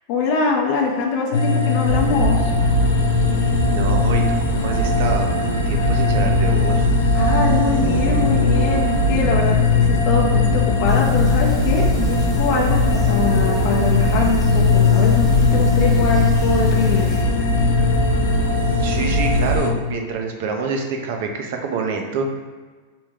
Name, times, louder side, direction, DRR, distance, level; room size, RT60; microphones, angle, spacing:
voice 1, 0.1-2.5 7.1-17.1, left 4 dB, 40° left, -1 dB, 0.6 m, -23 dB
sound 1, 1.3-19.7, left 5 dB, 80° left, 0.7 m, -20 dB
sound 2, 1.8-19.6, right 2 dB, 90° right, 0.8 m, -22 dB
voice 2, 3.6-4.2 4.5-6.9 18.8-22.4, right 4 dB, 55° right, 3 dB, 0.6 m, -27 dB
sound 3, 10.9-17.2, left 1 dB, 10° right, 0.5 m, -31 dB
4.9 x 3.0 x 3.5 m, 1.4 s
supercardioid pair, 160°, 0 cm